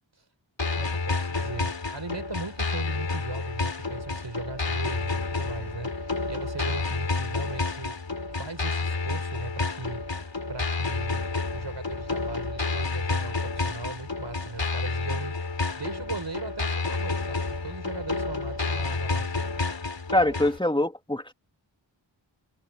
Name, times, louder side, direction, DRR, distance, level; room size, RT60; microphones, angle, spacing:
sound 1, 0.6-20.6, left 3 dB, 65° left, 3.5 m, -30 dB
voice 1, 0.8-10.1 10.5-11.3 11.5-19.4, right 3 dB, 65° right, 5.6 m, -38 dB
voice 2, 20.1-21.3, left 1 dB, 10° left, 2.0 m, -24 dB
wide cardioid pair, 50°, 47 cm